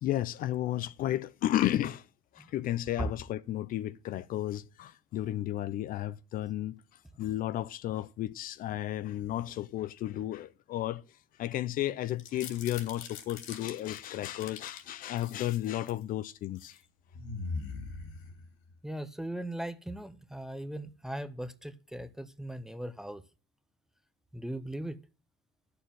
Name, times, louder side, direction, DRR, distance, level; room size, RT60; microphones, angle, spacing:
voice 1, 0.0-2.0 2.3-6.7 7.2-11.0 11.4-16.8, left 13 dB, 45° left, 0.5 m, -33 dB
sound 1, 12.1-14.8 15.2-16.0 16.4-16.8 17.1-18.7, left 4 dB, 70° left, 3.0 m, -42 dB
voice 2, 18.8-23.2 24.3-25.0, right 1 dB, ahead, 0.6 m, -38 dB
11.0 x 6.9 x 7.4 m
cardioid pair, 155°, 20 cm